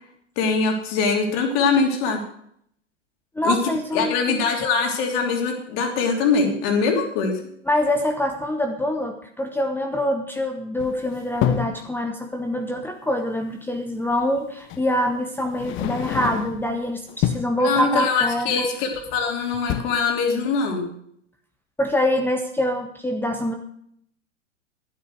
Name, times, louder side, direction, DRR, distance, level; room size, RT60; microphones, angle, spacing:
voice 1, 0.4-2.2 3.4-3.6 3.9-7.4 17.6-20.9, left 4 dB, 50° left, 3 dB, 3.1 m, -22 dB
voice 2, 3.3-4.5 7.6-18.7 21.8-23.5, left 1 dB, 5° left, 4 dB, 1.0 m, -25 dB
sound 1, 10.8-11.8 13.5-13.6 14.7-14.9 15.5-16.7 17.1-17.6 18.9-19.3 19.5-19.8, left 11 dB, 35° left, 0.9 m, -27 dB
11.5 x 9.3 x 6.4 m, 0.70 s
hypercardioid pair, 105°, 37 cm